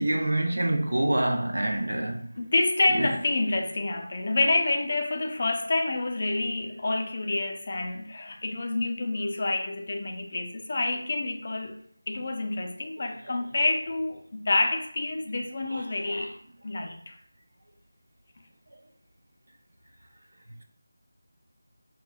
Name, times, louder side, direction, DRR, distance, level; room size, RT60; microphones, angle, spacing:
voice 1, 0.0-2.3 2.9-3.1 13.0-13.4 15.7-16.3 18.7-18.8, right 1 dB, 70° right, 0.6 m, -27 dB
voice 2, 2.4-16.4 16.6-17.1, left 2 dB, 45° left, 0.5 m, -28 dB
4.7 x 2.3 x 2.3 m
figure-of-eight pair, 165°, 0 cm